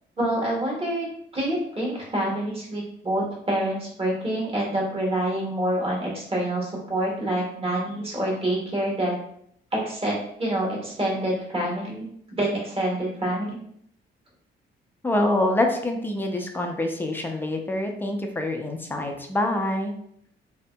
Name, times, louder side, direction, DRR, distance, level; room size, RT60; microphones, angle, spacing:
voice 1, 0.2-1.1 1.3-9.1 9.7-13.6, right 1 dB, 30° right, -3 dB, 1.2 m, -27 dB
voice 2, 15.0-19.9, left 1 dB, 10° left, 2 dB, 0.4 m, -26 dB
2.7 x 2.6 x 2.2 m, 0.69 s
cardioid pair, 90°, 20 cm